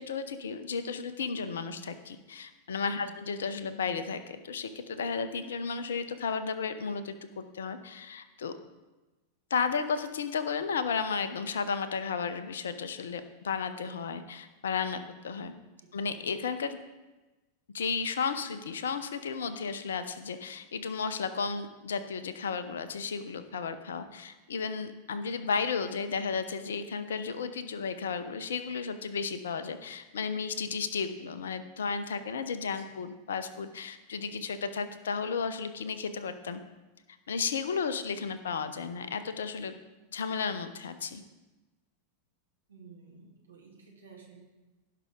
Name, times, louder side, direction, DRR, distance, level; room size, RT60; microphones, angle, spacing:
voice 1, 0.0-8.5 9.5-15.5 15.9-16.8 17.7-36.6 37.3-39.8 40.1-41.2, left 5 dB, 65° left, 11 dB, 0.8 m, -33 dB
voice 2, 42.7-44.4, right 5 dB, 75° right, -2 dB, 2.6 m, -53 dB
17.0 x 5.7 x 3.8 m, 1.1 s
figure-of-eight pair, 90°, 0 cm